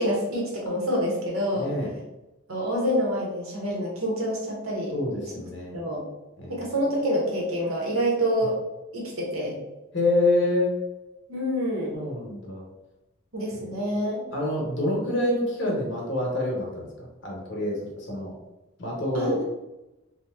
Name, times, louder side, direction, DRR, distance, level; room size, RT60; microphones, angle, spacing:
voice 1, 0.0-1.7 2.5-4.9 5.7-6.0 6.5-8.6 8.9-9.6 11.3-12.0 13.3-14.2 19.1-19.4, equal, 90° right, -2 dB, 0.9 m, -27 dB
voice 2, 1.5-1.9 4.9-5.8 6.4-6.6 9.9-10.7 11.9-12.7 13.6-13.8 14.3-18.3 18.8-19.4, left 1 dB, 55° left, -2 dB, 0.9 m, -27 dB
2.8 x 2.1 x 3.4 m, 1.0 s
head